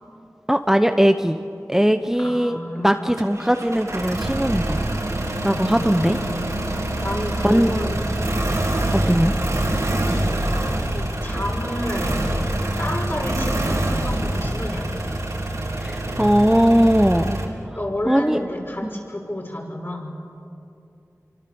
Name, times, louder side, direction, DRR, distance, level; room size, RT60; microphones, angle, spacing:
voice 1, 0.5-1.4 1.7-2.6 2.8-4.8 5.4-6.2 7.4-7.8 8.9-9.3 15.8-17.4 18.1-18.4 18.8-18.9, equal, 5° right, 7 dB, 0.8 m, -19 dB
voice 2, 2.2-3.2 5.6-6.4 7.0-8.2 10.9-12.3 12.8-15.1 17.8-20.2, left 1 dB, 40° left, 0 dB, 5.7 m, -31 dB
sound 1, 3.2-17.5, right 1 dB, 65° right, 3.8 m, -25 dB
29.0 x 24.5 x 7.0 m, 2.7 s
wide cardioid pair, 60°, 6 cm